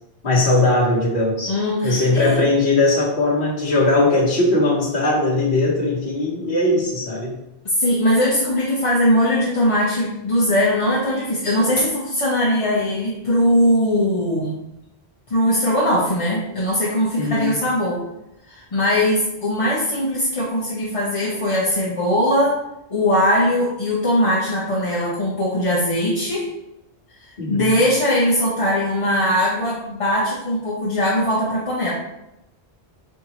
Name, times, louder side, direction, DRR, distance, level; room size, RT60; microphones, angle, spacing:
voice 1, 0.2-1.6 1.8-7.4 17.2-17.5 27.4-27.7, left 2 dB, 55° left, -8 dB, 1.2 m, -19 dB
voice 2, 1.5-2.5 7.6-14.6 15.3-18.0 18.5-22.6 22.9-26.5 27.2-31.9, left 1 dB, 35° left, -7 dB, 0.8 m, -20 dB
4.1 x 3.5 x 2.9 m, 0.87 s
omnidirectional pair, 1.1 m